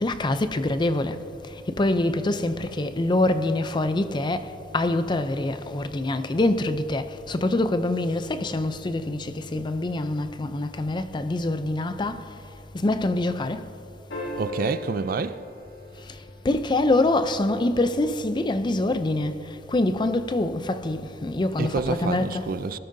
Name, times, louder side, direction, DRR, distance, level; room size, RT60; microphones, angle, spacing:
voice 1, 0.0-1.2 1.7-4.4 4.7-12.2 12.8-13.6 16.4-19.3 19.7-22.5, left 2 dB, 25° left, 0.5 m, -25 dB
sound 1, 14.1-16.6 18.9-19.0, left 1 dB, 70° left, 2.7 m, -37 dB
voice 2, 14.4-15.4 21.6-22.8, right 4 dB, 55° right, 0.4 m, -28 dB
19.0 x 13.0 x 2.7 m
head